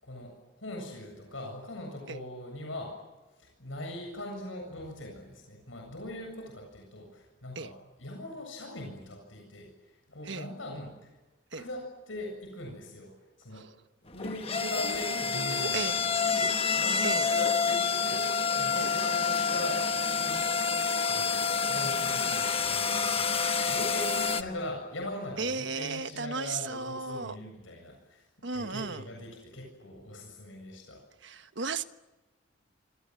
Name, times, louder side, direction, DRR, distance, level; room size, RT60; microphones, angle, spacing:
voice 1, 0.0-3.0 3.3-11.1 11.5-13.7 14.0-18.3 18.6-19.9 20.2-20.4 21.1-28.2 28.5-31.4, left 1 dB, 80° left, 2 dB, 7.6 m, -41 dB
sound 1, 14.1-24.4, left 5 dB, 30° left, 1.2 m, -28 dB
voice 2, 14.6-16.0 17.0-17.3 18.7-18.9 25.4-27.4 28.4-29.0 31.2-31.8, right 4 dB, 65° right, 10 dB, 1.4 m, -35 dB
27.0 x 26.5 x 7.9 m, 1.1 s
head